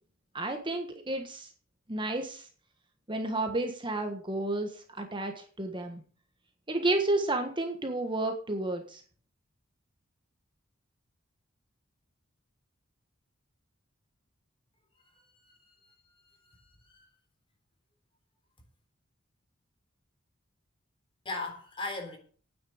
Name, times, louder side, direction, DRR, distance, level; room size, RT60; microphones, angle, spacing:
voice 1, 0.3-1.5 1.9-2.5 3.1-6.0 6.7-9.0, right 2 dB, 25° right, 1.5 m, -31 dB
voice 2, 14.9-15.9 16.2-17.1 21.2-22.2, left 2 dB, 25° left, 3.8 m, -40 dB
9.5 x 8.6 x 8.8 m
head